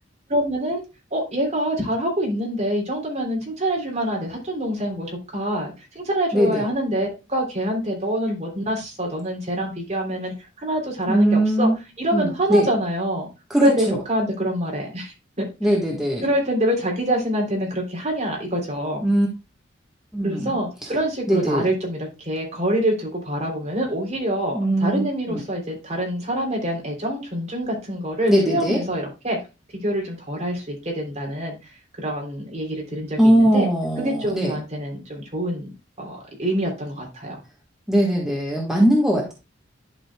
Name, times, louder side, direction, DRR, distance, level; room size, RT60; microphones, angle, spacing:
voice 1, 0.3-0.8 1.1-11.7 12.0-13.3 13.6-15.7 16.2-19.0 20.2-29.4 29.7-31.5 32.0-33.7 34.0-35.7 36.0-37.3, right 1 dB, 40° right, 0 dB, 3.1 m, -26 dB
voice 2, 6.3-6.7 11.1-11.8 12.1-12.7 13.5-14.0 15.6-16.3 19.0-19.3 20.1-20.6 21.3-21.7 24.5-25.4 28.3-28.8 33.2-34.6 37.9-39.3, right 1 dB, 5° right, -2 dB, 1.4 m, -20 dB
11.0 x 5.5 x 2.2 m, 0.27 s
head